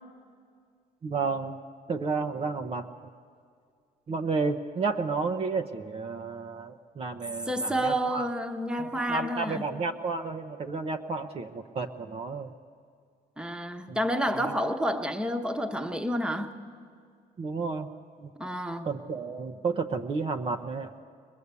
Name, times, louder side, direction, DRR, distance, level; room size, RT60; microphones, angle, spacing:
voice 1, 1.0-1.6 1.9-2.9 4.1-8.3 8.8-12.5 13.9-14.0 14.3-14.6 17.4-17.9 18.2-18.3 18.8-20.9, right 4 dB, 35° right, 5 dB, 0.8 m, -31 dB
voice 2, 7.5-9.6 13.4-16.5 18.4-18.9, equal, 5° right, 5 dB, 1.2 m, -29 dB
22.0 x 20.5 x 8.3 m, 2.2 s
cardioid pair, 110°, 17 cm